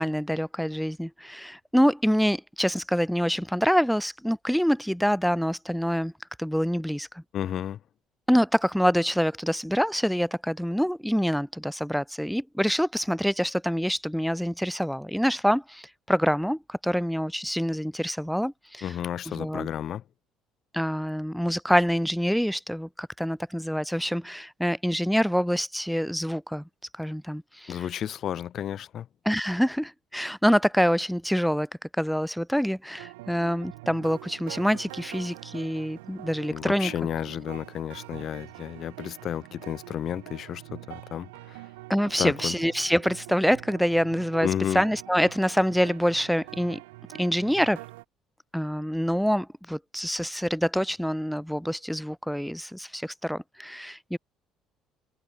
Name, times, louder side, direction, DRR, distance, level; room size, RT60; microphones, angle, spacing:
voice 1, 0.0-6.1 6.4-7.2 8.3-18.9 19.3-19.7 20.7-26.6 27.0-27.9 29.3-31.7 32.0-36.9 41.9-44.5 44.7-46.8 47.2-47.8 48.5-54.2, equal, ahead, 0.5 m, -26 dB
voice 2, 7.3-7.8 18.8-20.0 27.7-29.1 36.5-41.6 42.2-42.5 44.4-44.8, left 10 dB, 50° left, 0.5 m, -32 dB
sound 1, 33.0-48.0, right 21 dB, 75° right, 2.5 m, -45 dB
figure-of-eight pair, 55°, 0 cm